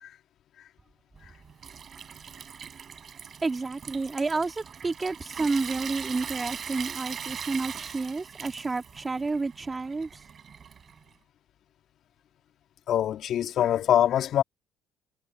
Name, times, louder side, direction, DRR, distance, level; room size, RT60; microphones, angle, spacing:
Water tap faucet / Sink (filling or washing) / Trickle dribble, 1.2-11.1, right 7 dB, 45° right, 6.8 m, -41 dB
voice 1, 3.4-10.1, right 3 dB, 25° right, 2.8 m, -30 dB
voice 2, 12.9-14.4, left 10 dB, 60° left, 2.2 m, -23 dB
hypercardioid pair, 60°, 0 cm